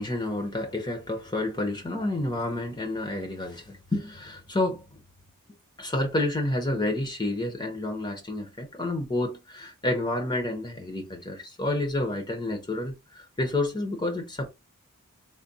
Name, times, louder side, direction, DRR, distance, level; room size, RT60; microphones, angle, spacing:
voice 1, 0.0-5.0 5.8-14.5, left 1 dB, 20° left, 0.7 m, -29 dB
3.4 x 2.2 x 4.0 m
head